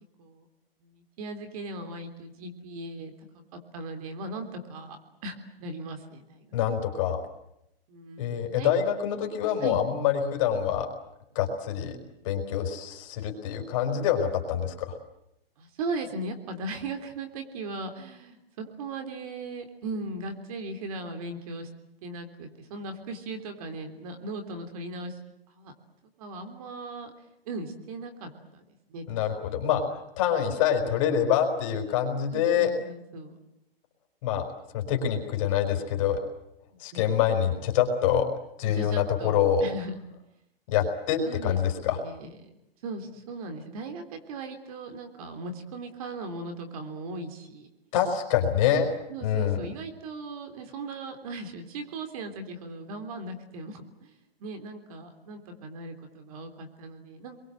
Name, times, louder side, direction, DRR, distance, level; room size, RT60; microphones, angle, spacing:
voice 1, 0.8-3.1 3.5-5.0 5.2-6.6 7.9-8.8 9.2-9.8 11.8-11.9 15.6-21.7 22.0-25.2 25.5-25.7 26.2-27.1 27.4-29.2 32.3-33.3 36.9-37.1 38.6-39.9 41.2-42.5 42.8-47.7 49.1-54.1 54.4-57.4, right 2 dB, 40° right, 7 dB, 3.5 m, -38 dB
voice 2, 6.5-7.2 8.2-10.9 11.3-12.0 12.2-14.9 29.1-32.7 34.2-34.5 34.7-36.2 36.8-38.3 38.6-39.6 40.7-42.0 47.9-48.9 49.2-49.6, left 9 dB, 35° left, 4 dB, 4.7 m, -26 dB
29.0 x 23.0 x 7.8 m, 0.83 s
hypercardioid pair, 165°, 30 cm